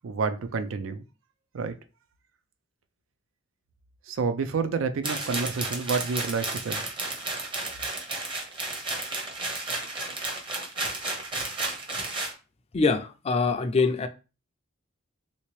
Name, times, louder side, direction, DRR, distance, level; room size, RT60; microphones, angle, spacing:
voice 1, 0.0-1.0 1.5-1.7 4.1-6.8, right 5 dB, 75° right, 0.4 m, -29 dB
sound 1, 5.0-12.3, right 2 dB, 25° right, 0.7 m, -32 dB
voice 2, 12.7-14.1, left 4 dB, 30° left, 0.4 m, -24 dB
3.2 x 2.8 x 3.1 m
head